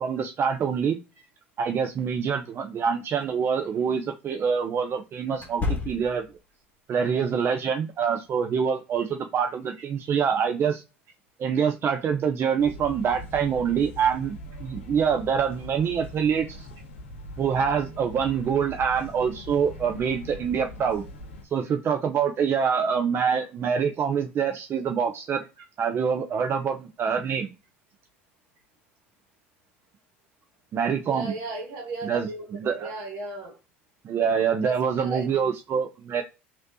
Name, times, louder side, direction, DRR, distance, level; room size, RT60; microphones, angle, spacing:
voice 1, 0.0-1.0 1.6-6.2 6.9-10.8 11.4-16.7 17.4-21.0 21.5-25.5 25.8-27.5 30.7-31.3 32.0-32.9 34.0-36.2, right 7 dB, 35° right, 0.4 m, -25 dB
sound 1, 3.1-3.3 5.3-6.4, left 4 dB, 25° left, 1.0 m, -31 dB
sound 2, 12.6-21.4, left 1 dB, 85° left, 0.6 m, -41 dB
voice 2, 31.1-33.6 34.6-35.5, right 2 dB, 60° right, 1.3 m, -36 dB
3.1 x 2.6 x 2.6 m
hypercardioid pair, 70°, 7 cm